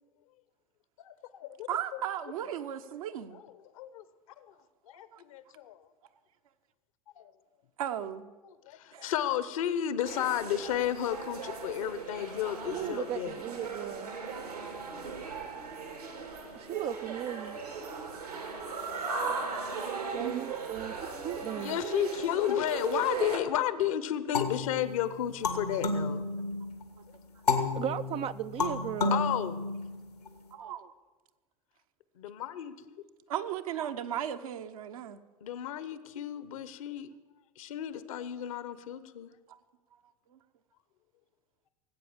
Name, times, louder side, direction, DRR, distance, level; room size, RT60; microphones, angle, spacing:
voice 1, 1.0-2.0 3.3-3.4 3.7-4.0 4.4-4.5 4.9-5.8 7.2-7.3 8.7-13.4 21.6-26.2 29.1-29.6 32.2-33.0 35.4-37.1 37.6-39.3, left 11 dB, 60° left, 14 dB, 1.0 m, -33 dB
voice 2, 1.7-3.4 5.1-5.2 7.8-8.3 8.9-9.1 14.3-14.7 17.1-17.2 17.4-17.5 18.4-18.5 19.3-20.5 30.5-30.9 33.3-35.2 37.9-38.0 39.5-39.6 40.3-40.4, right 10 dB, 65° right, 7 dB, 1.0 m, -37 dB
sound 1, 10.0-23.4, right 5 dB, 85° right, 2.5 m, -38 dB
voice 3, 12.7-14.1 16.5-17.6 20.1-21.8 27.7-29.2, right 11 dB, 30° right, 12 dB, 0.4 m, -36 dB
sound 2, 24.3-26.8 27.5-30.3, left 3 dB, 85° left, 1.7 m, -32 dB
18.0 x 8.5 x 7.4 m, 1.3 s
figure-of-eight pair, 80°, 19 cm